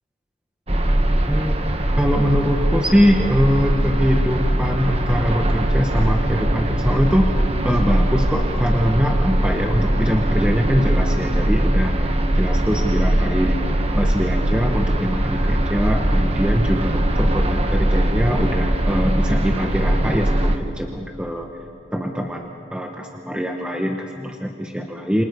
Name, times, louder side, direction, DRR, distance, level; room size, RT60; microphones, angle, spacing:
sound 1, 0.7-20.6, right 1 dB, 30° right, 1.3 m, -20 dB
voice 1, 2.0-13.6 13.9-21.5 21.9-25.3, equal, 5° right, 1 dB, 1.2 m, -22 dB
28.0 x 26.5 x 5.4 m, 2.5 s
head